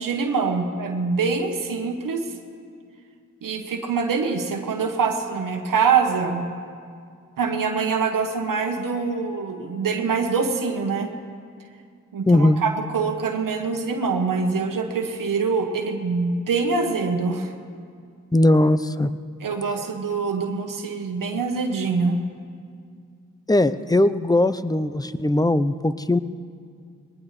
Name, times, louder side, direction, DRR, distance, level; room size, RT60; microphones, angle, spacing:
voice 1, 0.0-2.3 3.4-6.4 7.4-11.1 12.1-17.5 19.4-22.2, right 5 dB, 85° right, 4 dB, 1.1 m, -24 dB
voice 2, 12.3-12.6 18.3-19.1 23.5-26.2, left 1 dB, 10° left, 14 dB, 0.6 m, -19 dB
20.5 x 19.0 x 3.3 m, 2.2 s
cardioid pair, 40°, 32 cm